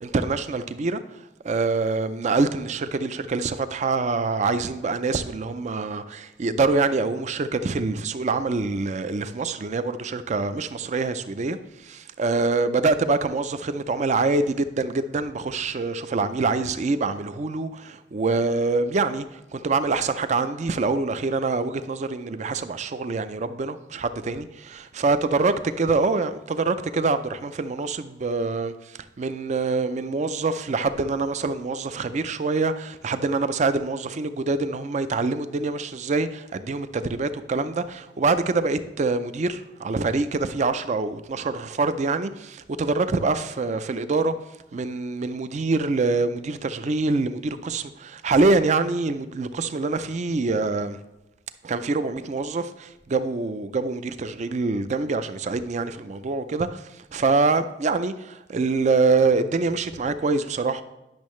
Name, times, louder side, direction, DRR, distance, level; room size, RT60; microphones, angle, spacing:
voice 1, 0.0-1.0 1.4-11.6 11.9-19.3 19.5-28.7 29.2-44.3 44.7-51.0 51.6-56.8 57.1-60.8, right 3 dB, 40° right, 0.4 m, -25 dB
10.5 x 6.3 x 3.1 m
head